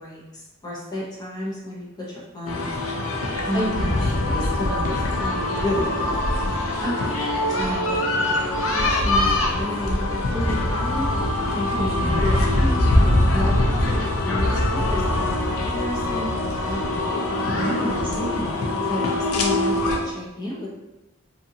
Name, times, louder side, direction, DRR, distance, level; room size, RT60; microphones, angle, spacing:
voice 1, 0.0-3.0 3.5-3.9 4.2-6.2 7.5-8.4 8.7-10.0 10.3-11.1 11.5-17.1 18.9-20.7, left 1 dB, 20° left, -6 dB, 0.6 m, -32 dB
sound 1, 2.5-20.0, left 1 dB, 75° left, 0.5 m, -23 dB
voice 2, 3.4-4.0 6.8-7.2 11.8-12.2 17.5-18.6, equal, 25° right, -6 dB, 0.7 m, -28 dB
2.7 x 2.4 x 2.6 m, 1.0 s
head